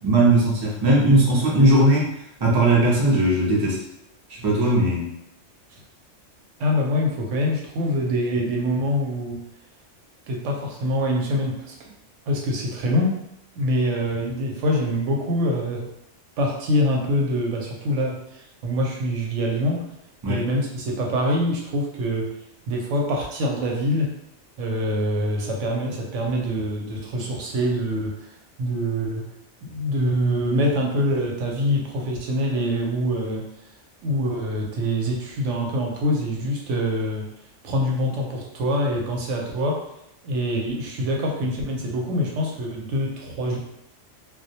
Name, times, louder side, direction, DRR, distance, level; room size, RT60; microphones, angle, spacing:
voice 1, 0.0-2.1 2.4-3.8 4.4-5.1 20.2-20.4, right 1 dB, 35° right, -4 dB, 0.4 m, -18 dB
voice 2, 6.6-9.4 10.3-11.7 12.3-13.2 13.6-15.9 16.4-19.9 20.3-22.3 22.7-24.1 24.6-28.3 28.6-29.3 29.6-33.5 34.0-37.3 37.6-39.8 40.2-43.6, equal, 85° right, 0 dB, 0.9 m, -25 dB
2.2 x 2.1 x 2.7 m, 0.78 s
omnidirectional pair, 1.3 m